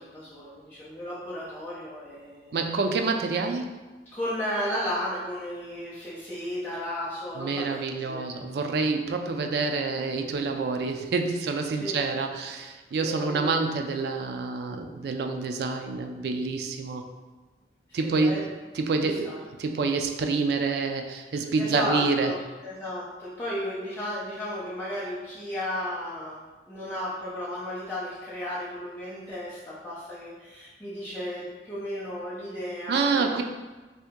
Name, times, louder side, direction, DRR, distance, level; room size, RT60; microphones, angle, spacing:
voice 1, 0.0-2.6 4.1-8.3 11.7-11.9 12.9-13.5 17.9-18.5 19.0-19.4 21.6-33.4, left 1 dB, 10° left, -10 dB, 0.5 m, -34 dB
voice 2, 2.5-3.9 7.4-17.2 17.9-18.5 18.7-22.3 32.9-33.4, right 4 dB, 65° right, 5 dB, 0.3 m, -27 dB
2.8 x 2.6 x 3.5 m, 1.3 s
head